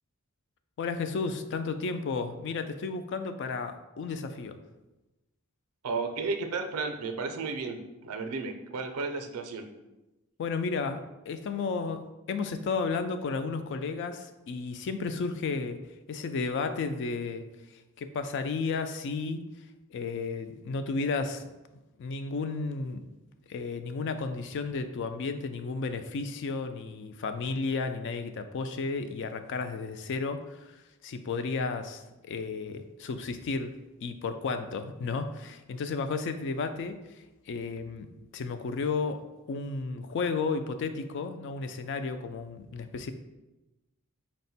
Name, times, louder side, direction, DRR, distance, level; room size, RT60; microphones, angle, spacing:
voice 1, 0.8-4.6 10.4-15.8 16.1-17.4 17.7-19.5 19.9-21.4 22.0-23.1 23.5-33.7 34.0-39.2 39.5-43.1, left 4 dB, 55° left, 9 dB, 0.3 m, -33 dB
voice 2, 5.8-9.7, right 4 dB, 85° right, 6 dB, 0.5 m, -33 dB
4.3 x 2.1 x 4.0 m, 1.0 s
head